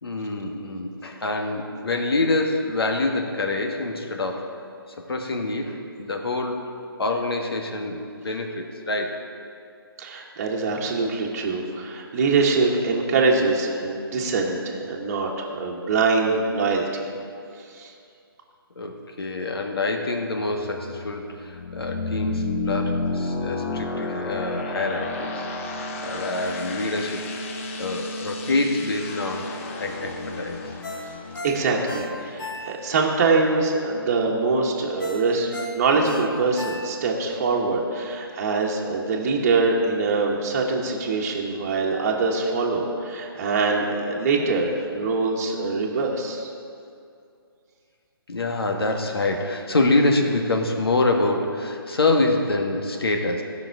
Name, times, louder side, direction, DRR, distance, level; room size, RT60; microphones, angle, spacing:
voice 1, 0.0-4.5 5.0-6.6 7.0-9.2 18.7-25.5 26.0-27.3 27.8-30.7 48.3-53.4, left 2 dB, 75° left, 3 dB, 1.5 m, -26 dB
voice 2, 10.0-17.0 17.7-17.9 31.4-46.5, right 3 dB, 35° right, -2 dB, 1.3 m, -23 dB
sound 1, 20.5-33.1, left 2 dB, 35° left, 0.8 m, -31 dB
Ringtone, 30.8-33.1 33.5-33.6 35.0-37.2 37.6-37.7, left 2 dB, 55° left, 1.6 m, -36 dB
16.5 x 5.9 x 4.6 m, 2.4 s
figure-of-eight pair, 145°, 13 cm